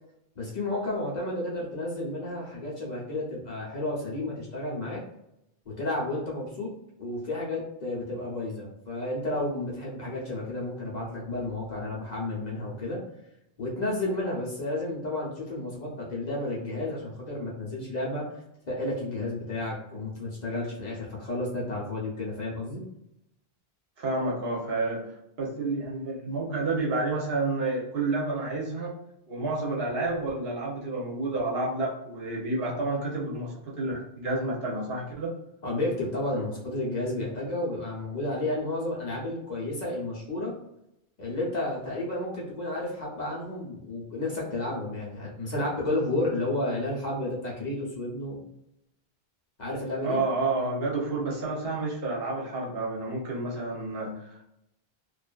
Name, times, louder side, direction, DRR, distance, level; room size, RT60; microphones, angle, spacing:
voice 1, 0.4-5.0 5.7-6.7 7.0-13.0 13.6-18.2 18.7-22.8 35.6-40.5 41.2-48.4 49.6-50.2, left 2 dB, 50° left, -4 dB, 0.8 m, -32 dB
voice 2, 24.0-25.1 25.4-28.9 29.3-35.3 50.0-54.4, right 2 dB, 70° right, -3 dB, 1.0 m, -30 dB
2.5 x 2.4 x 2.3 m, 0.82 s
omnidirectional pair, 1.0 m